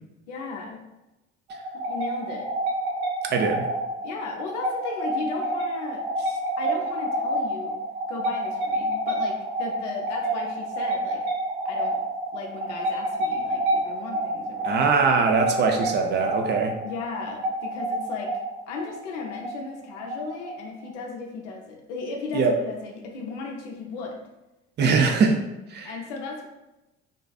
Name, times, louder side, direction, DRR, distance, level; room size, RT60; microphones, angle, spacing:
voice 1, 0.3-0.8 1.7-2.5 4.0-6.1 6.6-7.8 8.1-11.2 11.6-12.0 12.3-14.8 16.8-18.3 18.7-24.2 24.8-25.1 25.8-26.5, left 4 dB, 75° left, 1 dB, 0.6 m, -35 dB
sound 1, 1.5-20.9, right 1 dB, 55° right, 0.8 m, -29 dB
voice 2, 3.3-3.7 14.6-16.8 22.3-22.5 24.8-25.4 25.7-25.9, right 4 dB, 30° right, 4 dB, 0.4 m, -22 dB
2.4 x 2.3 x 2.3 m, 0.98 s
figure-of-eight pair, 55°, 35 cm